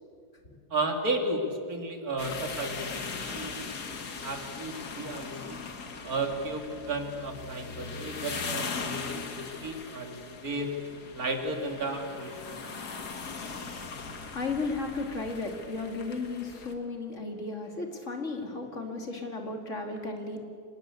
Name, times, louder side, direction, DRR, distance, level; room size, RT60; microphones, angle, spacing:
voice 1, 0.7-3.6 4.2-5.6 6.0-10.7 11.1-12.8, right 2 dB, 65° right, 4 dB, 3.0 m, -33 dB
sound 1, 2.2-16.7, left 4 dB, 80° left, 2.3 m, -39 dB
voice 2, 14.2-20.4, left 3 dB, 50° left, 4 dB, 2.9 m, -34 dB
25.0 x 19.5 x 8.4 m, 2.3 s
omnidirectional pair, 1.7 m